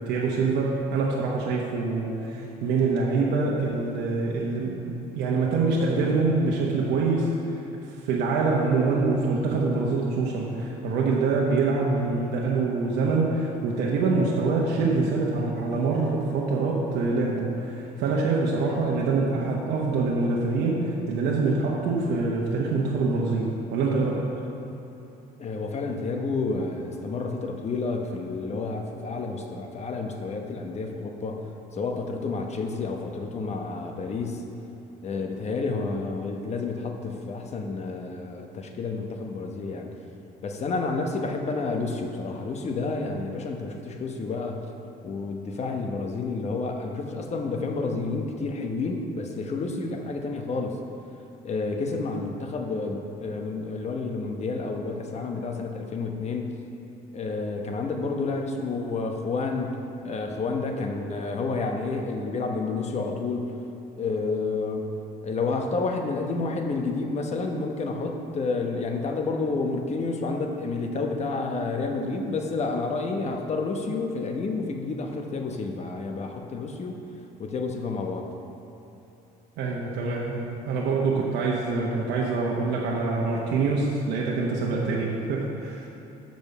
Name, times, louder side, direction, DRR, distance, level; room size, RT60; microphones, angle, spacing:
voice 1, 0.1-7.6 8.0-24.3 79.6-85.9, right 3 dB, 85° right, -3 dB, 1.0 m, -25 dB
voice 2, 25.4-31.4 31.7-34.4 35.0-39.9 40.4-44.6 45.0-50.8 51.4-56.5 57.1-63.5 64.0-64.9 65.2-77.0 77.4-78.3, left 3 dB, 40° left, 3 dB, 0.9 m, -30 dB
7.0 x 5.2 x 6.7 m, 3.0 s
cardioid pair, 110°, 17 cm